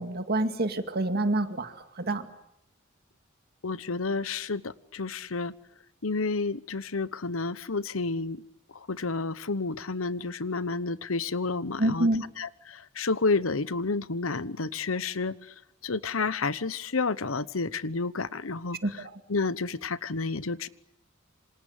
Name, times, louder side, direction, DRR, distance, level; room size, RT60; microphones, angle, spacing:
voice 1, 0.0-2.3 11.8-12.2 18.8-19.1, right 1 dB, 50° right, 8 dB, 2.3 m, -27 dB
voice 2, 3.6-5.5 6.0-8.4 8.7-12.1 12.4-15.5 15.8-18.8 19.3-20.7, left 3 dB, 85° left, 17 dB, 1.1 m, -30 dB
27.5 x 26.5 x 8.3 m, 0.77 s
head